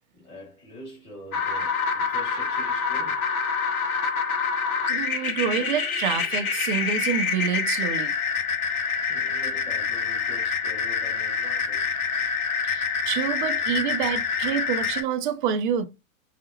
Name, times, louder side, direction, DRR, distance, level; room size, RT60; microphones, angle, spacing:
voice 1, 0.1-3.2 4.6-4.7 9.1-12.1, left 1 dB, 35° left, 2.0 m, -45 dB
sound 1, 1.3-15.0, left 5 dB, 80° left, 0.7 m, -26 dB
voice 2, 4.9-8.1 12.6-15.9, right 8 dB, 40° right, 0.4 m, -27 dB
4.8 x 2.0 x 2.6 m
figure-of-eight pair, 105°, 42 cm